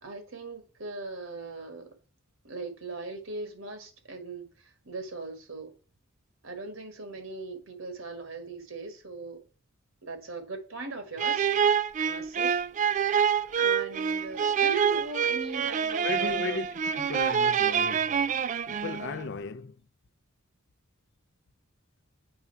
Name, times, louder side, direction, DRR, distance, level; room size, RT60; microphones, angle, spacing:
voice 1, 0.0-1.9 2.4-5.7 6.4-9.4 10.0-11.5 12.0-12.7 12.9-16.6, right 3 dB, 75° right, 1.8 m, -39 dB
sound 1, 11.2-19.2, right 7 dB, 35° right, 0.3 m, -26 dB
voice 2, 16.0-16.7 16.9-18.3 18.7-19.8, left 4 dB, 60° left, 0.6 m, -35 dB
7.7 x 3.7 x 5.6 m
head